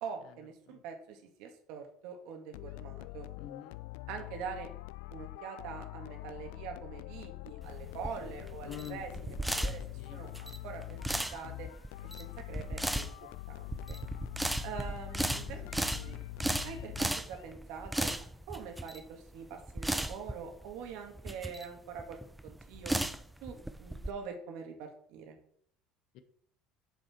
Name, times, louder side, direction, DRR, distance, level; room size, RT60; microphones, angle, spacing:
voice 1, 0.0-3.3 4.1-4.7 5.1-9.1 9.5-9.8 10.1-11.7 12.2-13.2 13.5-14.0 14.6-16.2 16.6-18.1 18.5-22.2 22.4-22.9 23.4-25.4, right 6 dB, 65° right, 3 dB, 2.0 m, -44 dB
sound 1, 2.5-17.5, left 19 dB, 90° left, 0.3 m, -45 dB
voice 2, 3.4-3.8 8.7-9.0 10.0-10.2 15.3-15.5 16.1-16.2 26.1-26.2, left 10 dB, 50° left, 10 dB, 0.8 m, -45 dB
sound 2, 7.6-24.1, right 1 dB, 5° right, 0.4 m, -36 dB
7.6 x 7.1 x 4.4 m, 0.62 s
cardioid pair, 170°, 0 cm